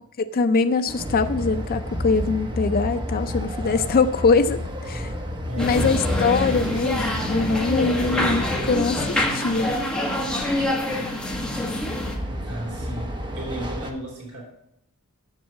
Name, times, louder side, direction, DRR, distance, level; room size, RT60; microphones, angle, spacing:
voice 1, 0.3-5.1 5.6-9.7, left 4 dB, 40° left, 8 dB, 0.4 m, -23 dB
Train, 0.9-9.3 11.2-13.9, equal, 20° right, 1.0 m, -31 dB
voice 2, 5.5-5.9 12.5-14.4, right 1 dB, 90° right, -4 dB, 3.4 m, -34 dB
sound 1, 5.6-12.2, left 1 dB, 5° left, 1.4 m, -26 dB
7.5 x 7.3 x 7.2 m, 0.78 s
head